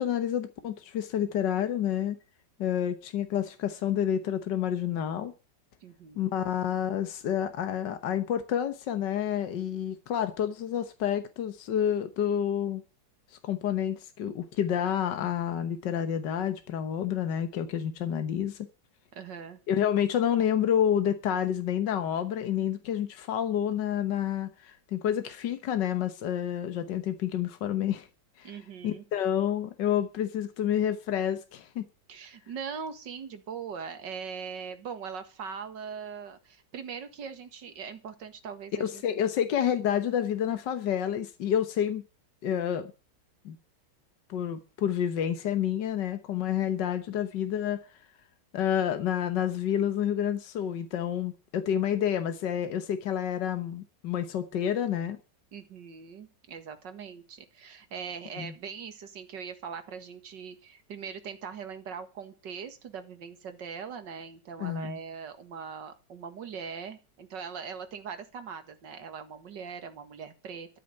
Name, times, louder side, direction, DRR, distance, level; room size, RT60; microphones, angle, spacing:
voice 1, 0.0-2.2 2.6-5.3 6.2-12.8 13.4-18.7 19.7-28.1 28.4-28.5 28.8-31.8 38.8-42.0 42.4-42.9 43.5-43.6 44.3-47.8 48.5-55.2 58.4-58.5 64.6-65.0, left 9 dB, 75° left, 1.8 m, -29 dB
voice 2, 5.8-6.3 19.1-19.6 28.4-29.0 32.1-39.0 55.5-70.8, right 6 dB, 75° right, 2.4 m, -41 dB
13.5 x 6.7 x 9.0 m
omnidirectional pair, 1.9 m